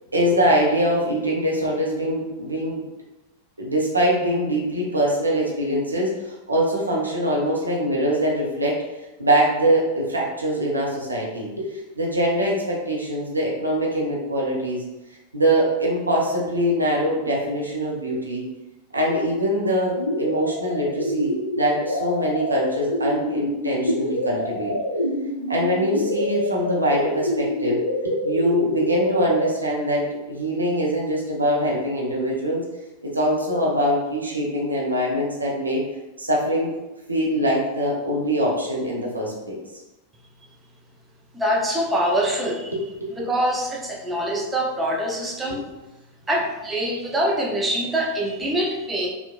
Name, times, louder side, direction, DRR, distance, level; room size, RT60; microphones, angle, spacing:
voice 1, 0.1-2.8 3.6-8.8 9.2-14.8 15.3-18.4 18.9-24.7 25.5-27.8 28.0-32.6 33.0-35.8 36.2-36.7 37.1-39.6 42.7-43.1, equal, 80° right, -3 dB, 0.6 m, -23 dB
sound 1, 20.0-29.5, equal, 80° left, 0.3 m, -26 dB
voice 2, 41.3-42.7 43.1-45.6 46.3-49.1, equal, 10° right, -2 dB, 0.4 m, -24 dB
2.9 x 2.1 x 2.3 m, 1.0 s
figure-of-eight pair, 90°, 0 cm